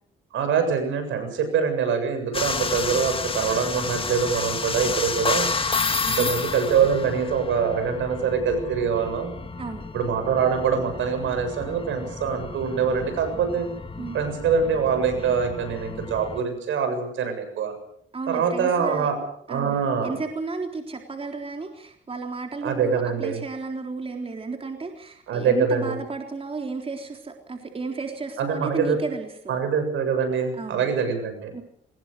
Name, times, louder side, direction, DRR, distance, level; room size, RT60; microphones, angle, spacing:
voice 1, 0.3-5.5 6.0-9.3 9.9-13.7 14.1-17.7 18.3-19.1 19.5-20.2 22.6-23.4 25.3-25.9 28.4-29.0 29.5-31.5, right 6 dB, 75° right, 7 dB, 7.5 m, -24 dB
sound 1, 2.3-16.4, left 4 dB, 25° left, 2.2 m, -31 dB
voice 2, 18.1-19.1 19.5-29.6 30.5-31.1 31.5-31.6, right 4 dB, 30° right, 4 dB, 3.8 m, -33 dB
24.0 x 20.0 x 6.7 m, 0.68 s
cardioid pair, 90°, 20 cm